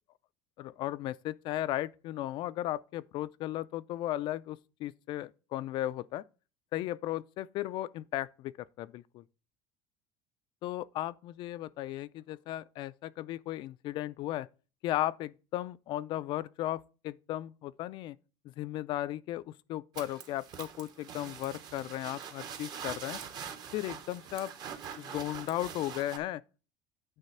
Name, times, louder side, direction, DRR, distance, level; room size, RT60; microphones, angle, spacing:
voice 1, 0.6-6.2 6.7-9.2 10.6-14.5 14.8-18.2 18.4-23.2 23.7-24.5 25.0-26.4, left 14 dB, 50° left, 0.4 m, -36 dB
sound 1, 19.9-26.2, right 7 dB, 40° right, 1.0 m, -44 dB
9.0 x 3.3 x 5.5 m
cardioid pair, 150°, 10 cm